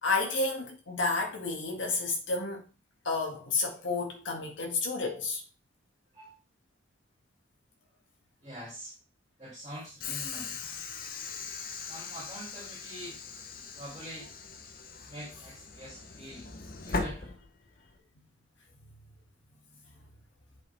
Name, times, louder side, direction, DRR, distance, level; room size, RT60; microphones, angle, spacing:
voice 1, 0.0-2.6 3.0-5.4, left 3 dB, 75° left, 1.9 m, -31 dB
voice 2, 8.4-8.9 9.4-10.6 11.9-13.2 13.8-14.3 15.1-16.4 16.8-17.3, equal, 25° right, 2.9 m, -44 dB
Train / Sliding door, 10.0-18.0, left 4 dB, 45° left, 0.8 m, -39 dB
7.8 x 5.4 x 3.4 m
head